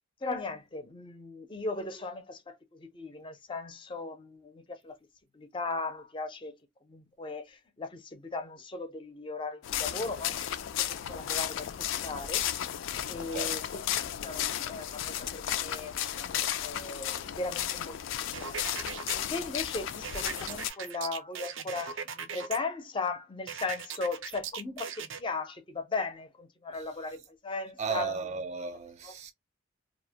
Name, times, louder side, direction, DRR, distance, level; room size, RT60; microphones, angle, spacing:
voice 1, 0.2-5.0 5.3-6.6 6.8-10.6 11.1-12.7 13.1-17.9 18.4-18.6 19.1-28.2 29.0-29.1, left 3 dB, 25° left, 0.5 m, -37 dB
sound 1, 9.6-20.7, left 11 dB, 80° left, 0.3 m, -34 dB
sound 2, 18.3-19.2 20.0-22.6 23.5-25.2, right 7 dB, 90° right, 0.5 m, -39 dB
voice 2, 27.8-29.3, right 5 dB, 35° right, 0.4 m, -34 dB
2.4 x 2.1 x 2.7 m
head